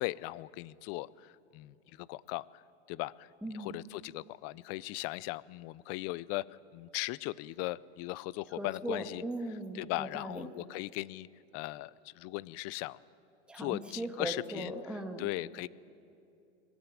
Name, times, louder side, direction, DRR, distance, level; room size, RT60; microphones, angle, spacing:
voice 1, 0.0-2.5 2.9-3.3 3.5-6.5 6.7-9.2 9.7-11.3 11.5-11.9 12.2-13.0 13.5-14.7 15.2-15.7, left 19 dB, 45° left, 21 dB, 0.5 m, -38 dB
voice 2, 3.4-3.7 8.5-10.5 13.5-15.3, right 1 dB, 5° right, 3 dB, 1.8 m, -39 dB
21.0 x 15.5 x 9.7 m, 2.5 s
supercardioid pair, 120°, 35 cm